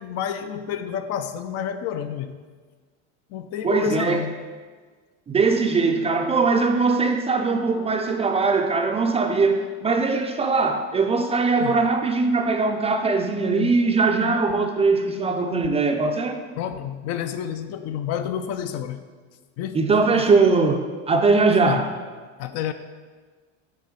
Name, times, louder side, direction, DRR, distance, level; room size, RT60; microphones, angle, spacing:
voice 1, 0.0-2.3 3.3-4.5 11.6-11.8 16.6-19.0 19.6-19.9 21.6-21.8 22.4-22.7, left 9 dB, 45° left, 9 dB, 0.4 m, -29 dB
voice 2, 3.6-4.3 5.3-16.4 19.7-21.9, right 4 dB, 15° right, 4 dB, 0.4 m, -21 dB
8.5 x 3.1 x 5.1 m, 1.4 s
supercardioid pair, 115°, 35 cm